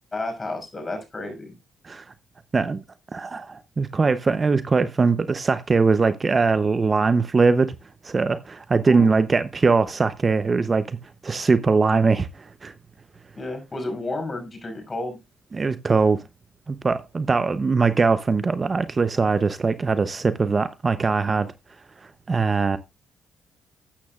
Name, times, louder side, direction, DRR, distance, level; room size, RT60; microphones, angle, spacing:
voice 1, 0.1-1.5 8.8-9.1 13.4-15.2, left 2 dB, 30° left, 5.9 m, -31 dB
voice 2, 2.5-2.8 3.1-7.7 8.0-11.0 11.2-12.7 15.5-16.2 16.7-21.5 22.3-22.8, right 4 dB, 30° right, 0.7 m, -21 dB
13.0 x 8.5 x 2.4 m
cardioid pair, 90°, 0 cm